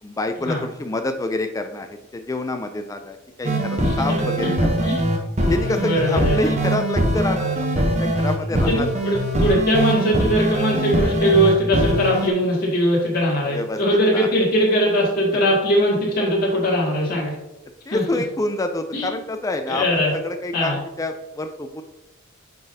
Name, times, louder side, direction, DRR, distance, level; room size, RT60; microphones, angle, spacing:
voice 1, 0.0-4.9 5.5-8.9 13.5-13.8 14.1-14.3 17.9-21.8, left 2 dB, 15° left, 7 dB, 0.3 m, -27 dB
sound 1, 3.4-12.3, right 1 dB, 30° right, 0.8 m, -22 dB
voice 2, 5.6-6.6 8.7-17.4 17.9-18.2 18.9-19.1 19.7-20.1 20.5-20.8, equal, 45° left, -5 dB, 2.2 m, -20 dB
10.0 x 3.9 x 2.7 m, 0.95 s
head